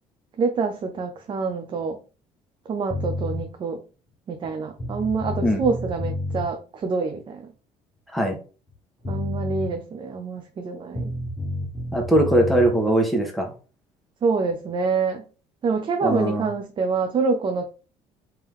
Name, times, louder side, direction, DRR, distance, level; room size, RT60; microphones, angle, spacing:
voice 1, 0.4-2.0 2.7-3.8 4.3-7.4 9.1-11.1 14.2-15.2 15.6-17.7, right 4 dB, 40° right, 0.6 m, -26 dB
sound 1, 2.9-3.4 4.4-4.5 4.8-6.5 8.7-8.8 9.0-9.7 10.9-12.7, left 1 dB, 25° left, 1.4 m, -29 dB
voice 2, 11.9-13.5 16.0-16.5, right 1 dB, ahead, 1.2 m, -20 dB
3.5 x 2.9 x 3.6 m
cardioid pair, 95°, 12 cm